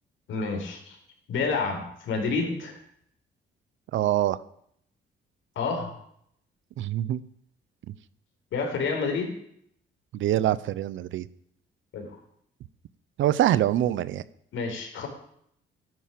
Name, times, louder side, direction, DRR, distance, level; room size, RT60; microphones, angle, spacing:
voice 1, 0.3-1.0 1.3-2.8 5.6-5.9 8.5-9.3 11.9-12.2 14.5-15.1, left 4 dB, 80° left, 3 dB, 4.4 m, -29 dB
voice 2, 3.9-4.4 6.8-7.2 10.1-11.3 13.2-14.2, right 12 dB, 75° right, 17 dB, 0.8 m, -24 dB
13.0 x 11.0 x 7.6 m, 0.69 s
cardioid pair, 90°, 20 cm